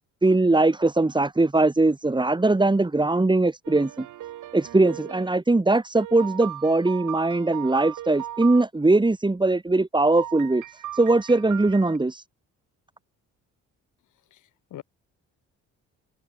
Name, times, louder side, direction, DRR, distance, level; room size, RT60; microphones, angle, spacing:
voice 1, 0.2-4.1 4.5-12.2, right 2 dB, 15° right, 3.2 m, -21 dB
sound 1, 3.6-5.3 6.0-8.6 10.2-12.0, right 13 dB, 80° right, 4.4 m, -37 dB
voice 2, 14.3-14.8, left 13 dB, 80° left, 5.7 m, -43 dB
cardioid pair, 90°, 30 cm